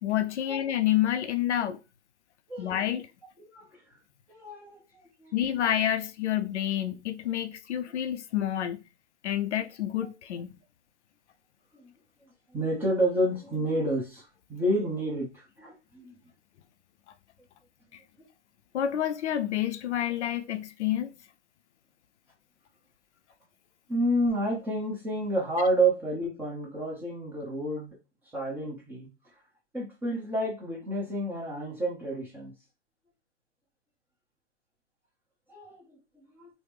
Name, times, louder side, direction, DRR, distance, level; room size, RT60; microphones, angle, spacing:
voice 1, 0.0-1.8 2.6-3.1 5.3-8.8 9.2-10.6 17.9-18.0 18.7-21.1, left 11 dB, 75° left, 0.5 m, -28 dB
voice 2, 2.5-2.8 3.5-3.7 4.3-5.3 11.7-11.9 12.5-16.1 23.9-27.9 28.3-29.1 29.7-32.5 35.5-36.5, right 1 dB, 5° right, 0.6 m, -30 dB
3.1 x 2.0 x 3.3 m
hypercardioid pair, 140°, 35 cm